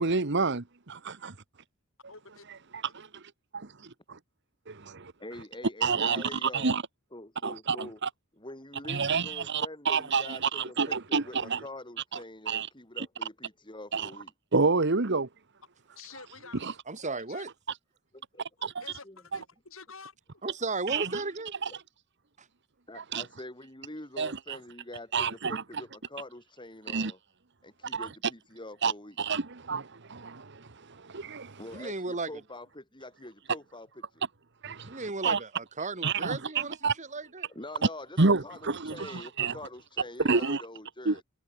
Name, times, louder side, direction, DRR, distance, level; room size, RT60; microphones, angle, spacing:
voice 1, 0.0-1.3 2.7-3.1 3.5-3.7 4.1-4.2 4.7-5.1 5.8-6.8 7.4-8.1 8.9-11.6 12.5-12.7 13.0-13.1 13.9-14.1 14.5-15.3 16.5-16.7 18.6-18.7 20.9-21.1 21.6-21.7 23.0-23.2 24.2-24.6 25.1-25.6 26.9-27.1 27.9-28.1 28.8-28.9 29.2-31.6 34.6-35.4 36.0-36.9 38.2-39.5 40.2-40.6 41.0-41.2, right 4 dB, 60° right, 1.4 m, -29 dB
voice 2, 2.1-2.4 16.0-16.6 16.9-17.4 18.8-20.1 40.3-40.5, left 5 dB, 70° left, 6.7 m, -48 dB
voice 3, 5.2-6.7 7.1-8.0 8.4-14.3 18.1-18.5 19.0-19.2 22.9-27.2 27.6-29.2 31.6-34.2 37.5-41.2, left 1 dB, 25° left, 7.2 m, -45 dB
voice 4, 16.9-17.5 20.4-21.5 31.7-32.3 34.8-37.5, right 3 dB, 35° right, 2.4 m, -35 dB
head